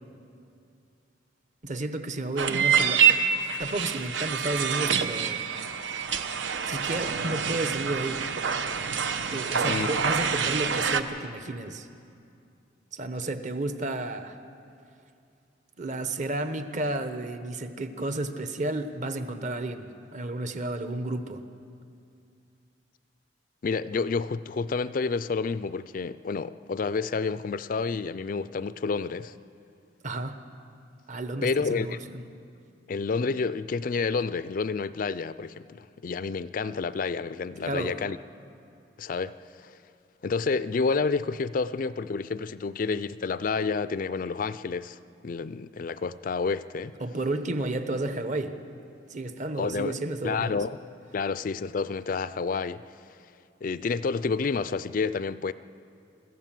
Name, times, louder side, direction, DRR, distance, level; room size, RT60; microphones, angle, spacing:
voice 1, 1.6-3.1 3.6-5.4 6.7-8.3 9.3-11.9 12.9-14.4 15.8-21.4 30.0-30.4 31.1-32.2 37.6-38.0 47.0-48.6 49.1-50.6, right 2 dB, 40° right, 1.0 m, -32 dB
sound 1, 2.4-11.0, right 7 dB, 80° right, 1.0 m, -26 dB
voice 2, 23.6-29.3 31.4-32.0 32.9-38.2 39.0-39.3 39.6-39.7 40.2-45.0 45.2-46.9 49.6-49.9 50.2-50.8 51.1-52.8 53.6-55.5, left 4 dB, 45° left, 0.4 m, -29 dB
24.5 x 14.5 x 7.5 m
head